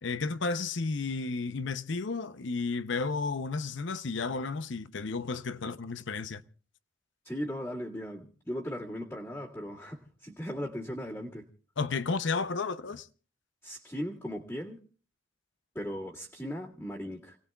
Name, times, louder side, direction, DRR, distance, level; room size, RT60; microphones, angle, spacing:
voice 1, 0.0-6.4 11.8-13.1, left 4 dB, 65° left, 0.7 m, -32 dB
voice 2, 7.2-11.5 13.6-14.8 15.7-17.4, equal, 10° left, 2.0 m, -38 dB
29.5 x 18.5 x 2.3 m
head